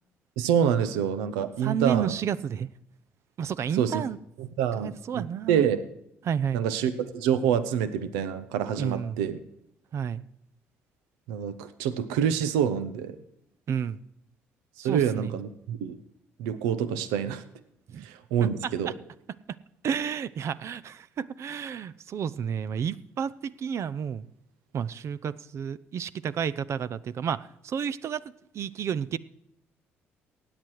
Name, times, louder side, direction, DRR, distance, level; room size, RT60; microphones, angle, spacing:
voice 1, 0.4-2.1 3.7-4.0 4.4-5.8 6.5-9.4 11.3-13.2 14.8-16.0 16.4-17.4 18.0-18.9, right 8 dB, 85° right, 12 dB, 0.9 m, -27 dB
voice 2, 1.6-2.7 3.4-4.2 4.8-5.6 6.2-6.6 8.8-9.2 9.9-10.2 13.7-14.0 14.8-15.3 17.9-18.0 18.6-18.9 19.8-23.3 23.6-24.3 24.7-28.2 28.5-29.2, right 8 dB, 55° right, 15 dB, 0.6 m, -31 dB
16.0 x 9.2 x 4.7 m, 0.78 s
hypercardioid pair, 60°, 6 cm